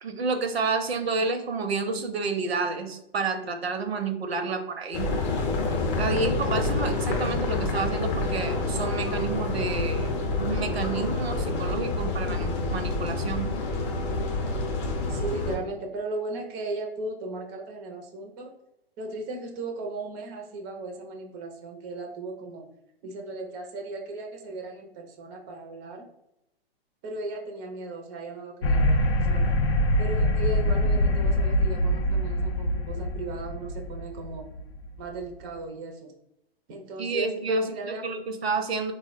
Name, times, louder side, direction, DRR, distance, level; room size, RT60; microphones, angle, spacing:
voice 1, 0.0-5.1 5.7-10.1 10.4-13.5 37.0-38.9, right 4 dB, 85° right, 7 dB, 0.6 m, -30 dB
sound 1, 4.9-15.6, left 2 dB, 30° left, 0.6 m, -28 dB
voice 2, 15.1-18.5 19.0-22.7 23.0-26.0 27.0-29.5 30.0-34.5 35.0-36.1 36.7-38.2, right 2 dB, 20° right, 2 dB, 0.4 m, -36 dB
sound 2, 28.6-35.1, equal, 80° left, 0.6 m, -24 dB
3.6 x 2.1 x 2.4 m, 0.83 s
figure-of-eight pair, 115°, 30 cm